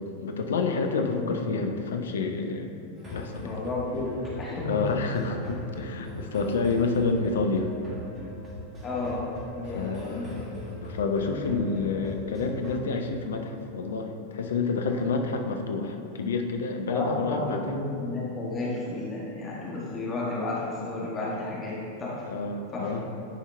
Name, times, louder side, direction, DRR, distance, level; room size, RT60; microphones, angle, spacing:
voice 1, 0.0-2.7 3.1-3.6 4.6-7.7 9.7-17.6 22.3-23.1, left 4 dB, 65° left, 4 dB, 0.6 m, -29 dB
sound 1, 3.0-12.8, left 1 dB, 20° right, 1.7 m, -41 dB
voice 2, 3.4-4.1 4.4-4.7 8.8-9.2 9.5-10.3 16.9-21.7 22.0-22.1 22.7-22.9, left 2 dB, 20° left, -6 dB, 1.5 m, -32 dB
10.0 x 4.6 x 3.3 m, 2.6 s
figure-of-eight pair, 90°, 0 cm